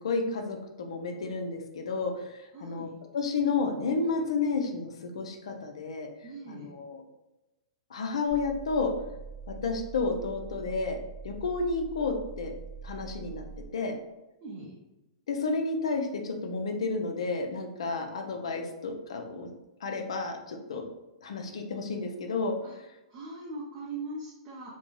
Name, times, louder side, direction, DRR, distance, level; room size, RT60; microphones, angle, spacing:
voice 1, 0.0-6.1 6.5-7.0 7.9-8.9 9.6-11.0 11.2-12.5 12.8-13.4 13.7-13.9 15.3-19.5 19.8-20.9 21.2-22.5, left 4 dB, 75° left, 4 dB, 0.5 m, -31 dB
voice 2, 2.5-2.9 6.2-6.7 14.4-14.7 22.6-22.7 23.1-24.7, right 2 dB, 35° right, -5 dB, 0.7 m, -40 dB
sound 1, 8.3-13.7, right 5 dB, 5° right, 0.9 m, -44 dB
2.6 x 2.2 x 3.1 m, 1.0 s
hypercardioid pair, 130°, 3 cm